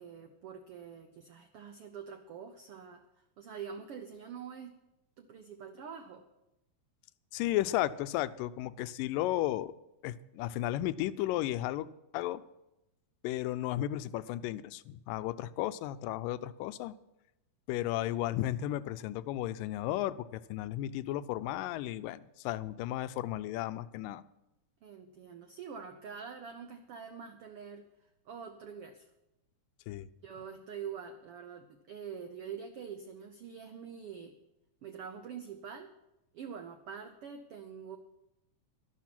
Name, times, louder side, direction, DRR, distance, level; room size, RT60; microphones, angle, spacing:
voice 1, 0.0-4.8 5.2-6.2 24.8-27.9 28.2-29.1 30.2-34.3 34.8-35.9 36.3-38.0, right 7 dB, 90° right, 7 dB, 1.2 m, -45 dB
voice 2, 7.3-9.7 10.0-11.9 12.1-12.4 13.2-16.9 17.7-24.2 29.9-30.1, left 14 dB, 90° left, 14 dB, 2.3 m, -34 dB
12.5 x 12.0 x 6.0 m, 0.90 s
omnidirectional pair, 3.8 m